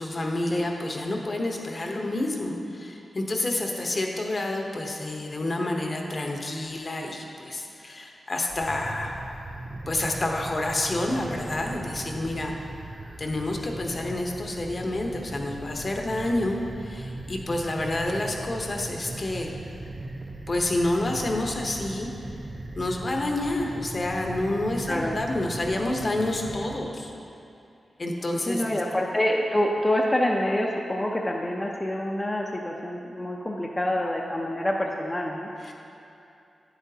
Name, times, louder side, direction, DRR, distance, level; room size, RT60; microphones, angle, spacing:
voice 1, 0.0-9.1 9.9-12.5 13.2-19.5 20.5-22.1 22.8-27.1 28.0-28.8 35.6-35.7, left 1 dB, 45° left, 1 dB, 0.9 m, -29 dB
sound 1, 8.4-26.8, right 2 dB, 30° right, 0.5 m, -39 dB
voice 2, 28.5-35.5, left 1 dB, 20° left, -2 dB, 0.6 m, -26 dB
9.7 x 8.0 x 2.8 m, 2.7 s
cardioid pair, 75°, 0 cm